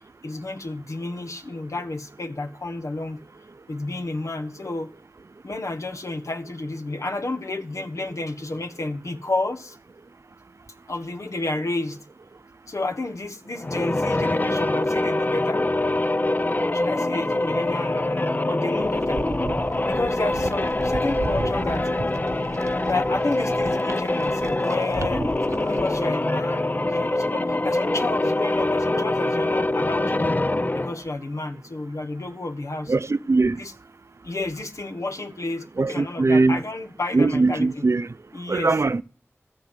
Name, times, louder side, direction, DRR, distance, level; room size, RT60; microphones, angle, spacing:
voice 1, 0.2-3.2 3.7-4.9 5.4-9.8 10.9-12.0 12.7-15.6 16.7-19.2 19.9-21.9 22.9-25.2 25.7-30.4 30.7-32.9 33.6-33.7 34.2-37.8 38.3-38.7, left 2 dB, 80° left, 1.3 m, -31 dB
sound 1, 13.5-31.1, left 2 dB, 35° left, 0.6 m, -24 dB
sound 2, 18.8-26.1, right 3 dB, 80° right, 1.0 m, -35 dB
voice 2, 32.9-33.6 35.8-36.6 37.1-38.1 38.5-39.0, right 3 dB, 65° right, 0.6 m, -20 dB
14.0 x 7.8 x 7.8 m
wide cardioid pair, 45°, 5 cm